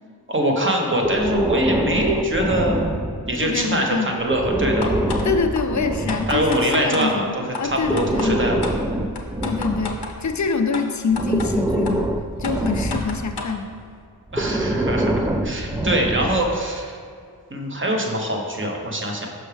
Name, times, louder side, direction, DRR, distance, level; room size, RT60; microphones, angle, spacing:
voice 1, 0.3-3.0 3.2-4.9 6.3-8.7 14.3-16.9 17.5-19.3, right 1 dB, 30° right, 1 dB, 1.1 m, -23 dB
Breathing, 1.0-3.5 4.2-6.6 7.7-10.5 11.1-13.3 14.3-16.6, right 1 dB, 10° right, 0.3 m, -25 dB
voice 2, 3.4-4.1 5.2-7.3 7.6-8.4 9.4-12.1 12.4-13.7, left 4 dB, 45° left, 7 dB, 0.6 m, -25 dB
sound 1, 4.8-5.3 5.5-5.6 6.1-7.1 7.5-7.6 8.0-8.3 8.6-8.8 9.2-10.1 10.7-10.8 11.2-11.5 11.9-12.0 12.4-13.5, left 4 dB, 75° left, 0.8 m, -30 dB
6.2 x 5.8 x 3.4 m, 2.2 s
cardioid pair, 45°, 40 cm